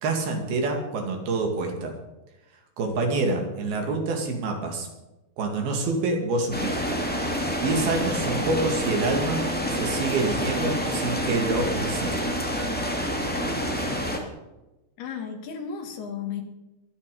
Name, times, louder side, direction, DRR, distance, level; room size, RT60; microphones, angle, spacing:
voice 1, 0.0-1.9 2.8-4.9 5.4-7.0 7.6-12.3, right 3 dB, 65° right, 2 dB, 4.1 m, -27 dB
sound 1, 6.5-14.2, equal, 5° left, 0.8 m, -28 dB
voice 2, 15.0-16.4, left 7 dB, 70° left, 5 dB, 3.7 m, -34 dB
22.0 x 9.9 x 5.3 m, 1.0 s
omnidirectional pair, 4.8 m